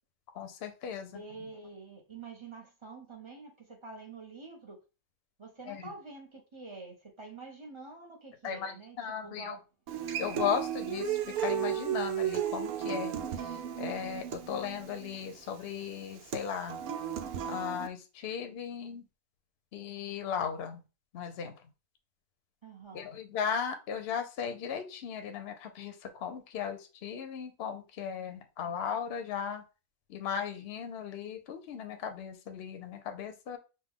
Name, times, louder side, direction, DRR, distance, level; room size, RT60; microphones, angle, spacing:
voice 1, 0.3-1.2 5.7-5.9 8.4-9.5 10.2-16.8 17.4-19.0 19.7-20.8 21.1-21.5 22.9-29.6 30.1-33.6, left 7 dB, 55° left, 7 dB, 0.8 m, -37 dB
voice 2, 1.1-4.8 5.4-9.6 22.6-23.1, right 3 dB, 30° right, 2 dB, 0.6 m, -47 dB
Human voice / Acoustic guitar, 9.9-17.9, right 9 dB, 85° right, 1.1 m, -34 dB
5.4 x 2.3 x 3.5 m, 0.30 s
omnidirectional pair, 1.5 m